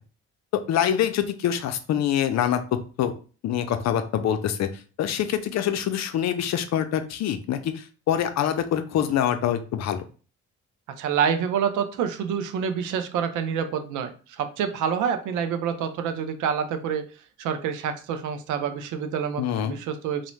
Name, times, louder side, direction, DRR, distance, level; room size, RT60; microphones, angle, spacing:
voice 1, 0.5-2.6 3.0-3.1 3.4-4.7 5.0-10.1 19.4-19.8, left 10 dB, 60° left, 9 dB, 0.5 m, -25 dB
voice 2, 11.0-17.0 17.4-20.3, right 7 dB, 85° right, 8 dB, 0.5 m, -27 dB
2.6 x 2.0 x 3.0 m, 0.37 s
cardioid pair, 90°, 30 cm